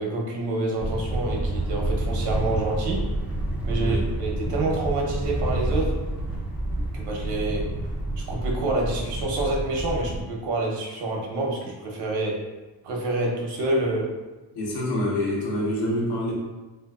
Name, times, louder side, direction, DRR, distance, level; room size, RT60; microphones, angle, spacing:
voice 1, 0.0-3.1 3.6-6.0 6.9-7.7 8.3-12.4 12.8-14.1, right 2 dB, 85° right, -1 dB, 0.8 m, -27 dB
sound 1, 0.8-10.2, right 1 dB, 5° right, 0.3 m, -28 dB
voice 2, 14.5-16.3, left 1 dB, 80° left, -3 dB, 1.1 m, -26 dB
3.3 x 2.8 x 2.3 m, 1.2 s
cardioid pair, 165°, 39 cm